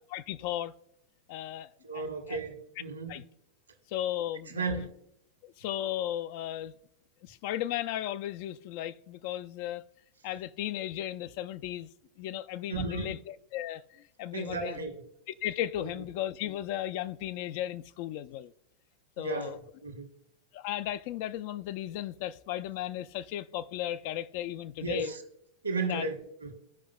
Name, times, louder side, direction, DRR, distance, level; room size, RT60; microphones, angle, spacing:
voice 1, 0.1-0.7 1.3-2.4 3.1-3.2 3.9-4.9 5.4-6.8 7.2-9.8 10.2-11.9 12.2-14.8 15.3-18.5 19.2-19.6 20.5-25.2 25.8-26.1, left 12 dB, 45° left, 0.3 m, -35 dB
voice 2, 1.8-3.1 4.5-4.9 12.7-13.1 14.3-15.0 15.8-15.9 19.2-19.5 19.8-20.1 24.8-25.2 25.6-26.5, right 3 dB, 75° right, 1.5 m, -34 dB
15.0 x 5.3 x 2.3 m
figure-of-eight pair, 90°, 0 cm